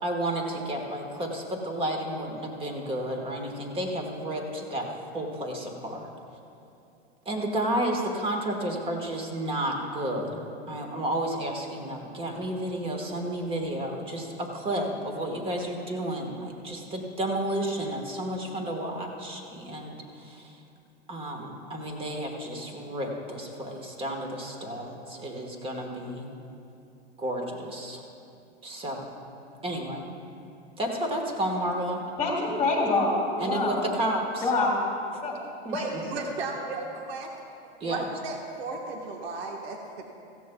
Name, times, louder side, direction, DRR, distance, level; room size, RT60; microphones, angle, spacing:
voice 1, 0.0-6.1 7.2-10.4 10.7-20.6 21.1-26.3 27.2-28.0 28.6-29.1 29.6-30.1 30.8-32.0 33.4-34.5 35.6-35.8 37.8-38.1, right 1 dB, 15° right, 2 dB, 1.4 m, -31 dB
voice 2, 32.2-33.8 34.4-34.8 35.2-35.4 35.7-35.9, left 3 dB, 10° left, -3 dB, 1.8 m, -26 dB
voice 3, 35.7-37.3 37.8-40.1, right 3 dB, 65° right, 1 dB, 1.4 m, -35 dB
17.0 x 15.0 x 2.3 m, 2.6 s
hypercardioid pair, 140°, 33 cm